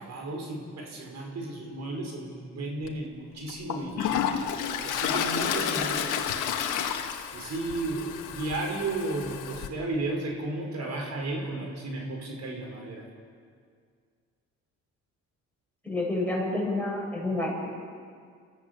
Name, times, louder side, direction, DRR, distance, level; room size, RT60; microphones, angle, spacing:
voice 1, 0.0-4.3 4.8-6.8 7.3-13.0, right 2 dB, 60° right, 1 dB, 5.4 m, -34 dB
Toilet flush, 2.8-2.9 3.5-9.7, left 8 dB, 85° left, 1.5 m, -31 dB
voice 2, 15.8-17.7, left 2 dB, 5° left, -3 dB, 7.8 m, -29 dB
28.0 x 15.0 x 7.2 m, 2.1 s
cardioid pair, 90°, 30 cm